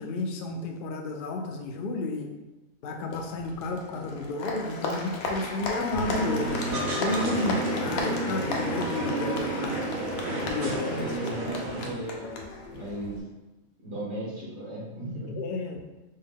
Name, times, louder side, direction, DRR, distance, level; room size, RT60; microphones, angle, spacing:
voice 1, 0.0-2.3 2.8-9.8 10.4-11.2 15.4-15.8, left 2 dB, 65° left, 3 dB, 0.5 m, -32 dB
Applause, 3.1-13.2, left 2 dB, 85° left, 1.1 m, -35 dB
sound 1, 5.9-11.9, right 2 dB, 85° right, 1.5 m, -31 dB
voice 2, 11.0-13.2 13.8-15.4, right 1 dB, 65° right, -8 dB, 1.6 m, -36 dB
5.4 x 2.2 x 3.5 m, 1.1 s
omnidirectional pair, 1.4 m